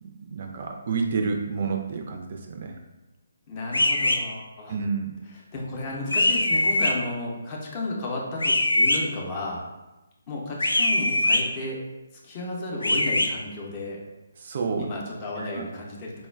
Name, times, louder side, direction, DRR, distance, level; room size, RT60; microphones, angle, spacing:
voice 1, 0.0-2.7 4.7-5.2 14.4-14.9 15.4-15.6, right 5 dB, 45° right, 3 dB, 0.3 m, -29 dB
voice 2, 3.5-4.8 5.3-9.6 10.3-11.8 12.2-14.0 14.8-16.3, left 2 dB, 25° left, -3 dB, 0.6 m, -33 dB
sound 1, 3.7-4.2 6.1-6.9 8.4-9.0 10.6-11.4 12.8-13.3, left 1 dB, 75° left, 0.3 m, -22 dB
4.2 x 2.2 x 2.2 m, 1.1 s
figure-of-eight pair, 140°, 0 cm